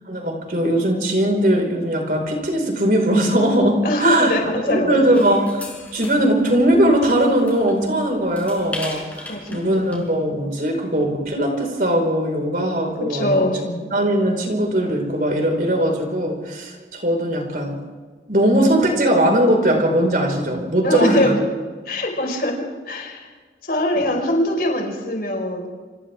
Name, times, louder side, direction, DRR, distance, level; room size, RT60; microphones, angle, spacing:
voice 1, 0.1-4.3 4.7-13.5 13.9-17.8 18.3-21.3 24.1-24.2, right 1 dB, 50° right, 2 dB, 5.0 m, -20 dB
voice 2, 3.8-4.4 4.7-5.2 9.3-9.7 13.1-13.8 20.8-21.4 21.8-23.3 23.6-25.7, left 1 dB, 55° left, 1 dB, 5.0 m, -22 dB
sound 1, 5.1-10.1, left 2 dB, 10° left, 4.8 m, -38 dB
29.5 x 26.5 x 3.6 m, 1.4 s
head